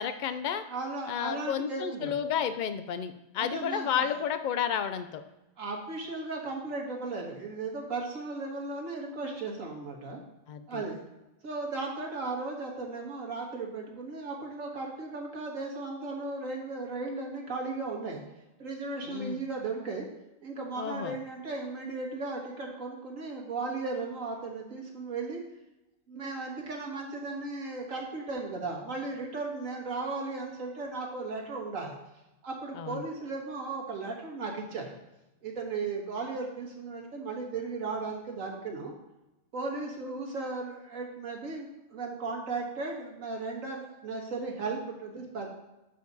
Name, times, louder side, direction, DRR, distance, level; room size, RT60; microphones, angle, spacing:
voice 1, 0.0-0.6 1.1-5.2 10.5-10.8 19.0-19.4 20.8-21.1 32.8-33.0, left 8 dB, 70° left, 10 dB, 0.4 m, -31 dB
voice 2, 0.7-2.1 3.4-4.1 5.6-10.2 10.7-11.0 11.4-18.2 18.6-20.0 20.4-25.4 26.1-31.9 32.4-34.9 35.4-38.9 39.5-45.5, right 3 dB, 75° right, -1 dB, 1.9 m, -36 dB
7.5 x 6.8 x 4.0 m, 0.98 s
omnidirectional pair, 1.4 m